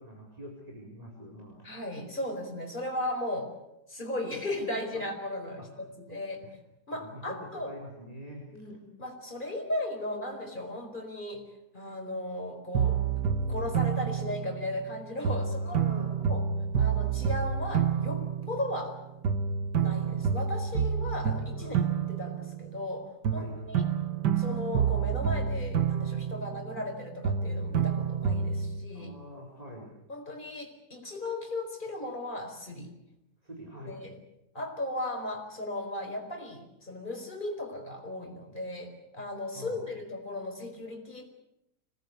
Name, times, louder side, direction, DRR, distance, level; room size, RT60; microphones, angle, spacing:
voice 1, 0.0-1.6 4.9-5.0 5.6-5.7 6.4-6.5 7.0-8.7 15.6-16.1 18.4-18.5 21.6-21.8 23.3-23.6 28.9-29.9 33.4-34.0 39.5-39.9, equal, 20° right, -1 dB, 4.5 m, -45 dB
voice 2, 1.6-3.5 3.9-6.4 6.9-7.7 8.5-13.0 13.5-15.8 16.3-16.4 16.8-19.0 19.8-21.8 22.1-23.8 24.4-29.1 30.1-32.9 33.9-34.2 34.5-41.3, left 1 dB, 25° left, 3 dB, 4.9 m, -36 dB
sound 1, 12.7-14.9 15.2-19.0 19.2-22.9 23.2-27.0 27.2-28.8, right 7 dB, 75° right, 1.9 m, -29 dB
26.5 x 19.5 x 8.3 m, 0.85 s
omnidirectional pair, 1.8 m